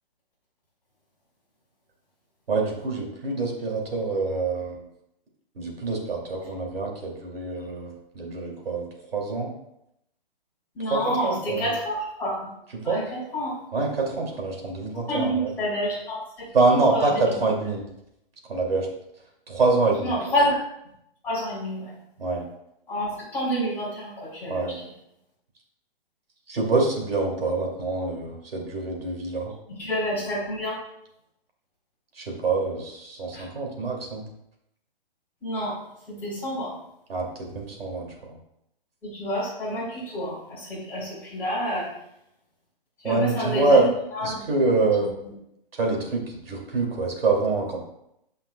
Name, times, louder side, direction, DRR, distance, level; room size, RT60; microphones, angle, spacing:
voice 1, 2.5-4.8 5.6-8.8 9.1-9.5 10.9-11.7 12.7-13.1 13.7-15.5 16.5-17.8 18.5-18.9 19.5-20.1 22.2-22.4 24.5-24.7 26.5-29.5 32.2-34.2 37.1-38.4 43.0-43.9 44.2-45.1 45.8-47.8, right 3 dB, 80° right, -1 dB, 2.7 m, -25 dB
voice 2, 10.7-12.5 12.8-13.6 14.9-17.5 20.0-20.6 21.2-21.9 22.9-24.7 29.7-30.8 33.3-33.4 35.4-35.8 36.1-36.7 39.0-41.9 43.0-44.4 45.0-45.1, equal, 5° left, -11 dB, 3.0 m, -29 dB
14.0 x 5.6 x 2.3 m, 0.80 s
hypercardioid pair, 175°, 29 cm